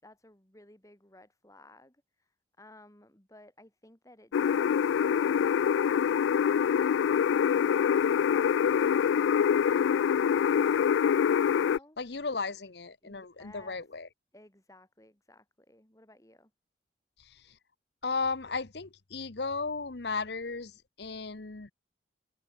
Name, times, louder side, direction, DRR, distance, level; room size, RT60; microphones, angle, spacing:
voice 1, 0.0-6.1 6.5-9.3 9.9-10.9 11.5-12.0 13.0-13.8 14.3-16.5, left 1 dB, 20° left, 3.5 m, -57 dB
sound 1, 4.3-11.8, left 8 dB, 90° left, 0.3 m, -25 dB
voice 2, 12.0-14.1 17.3-17.4 18.0-20.7 21.0-21.7, left 4 dB, 65° left, 1.1 m, -35 dB
head